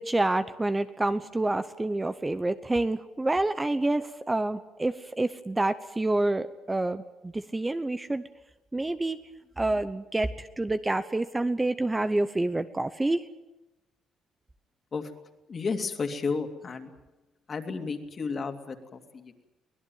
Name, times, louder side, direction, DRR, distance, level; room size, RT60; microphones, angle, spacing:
voice 1, 0.0-8.2 8.7-9.2 9.6-13.3, right 2 dB, 15° right, 11 dB, 0.8 m, -28 dB
voice 2, 15.5-16.9 17.5-19.5, left 4 dB, 35° left, 6 dB, 2.6 m, -33 dB
24.0 x 17.5 x 9.3 m, 1.0 s
cardioid pair, 115°, 0 cm